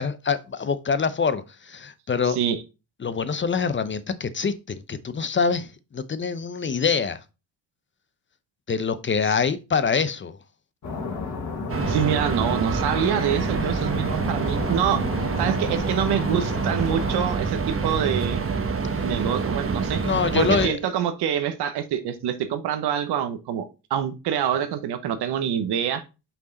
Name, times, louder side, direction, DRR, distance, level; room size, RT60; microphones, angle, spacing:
voice 1, 0.0-2.4 3.0-7.2 8.7-10.4 20.0-20.8, left 5 dB, 30° left, 0.7 m, -25 dB
sound 1, 10.8-17.3, left 4 dB, 45° left, 2.2 m, -33 dB
sound 2, 11.7-20.7, right 5 dB, 35° right, 1.1 m, -26 dB
voice 2, 11.9-15.1 15.4-18.4 19.0-20.0 20.3-26.0, right 9 dB, 75° right, 1.1 m, -26 dB
5.6 x 4.7 x 4.0 m
supercardioid pair, 75°, 40 cm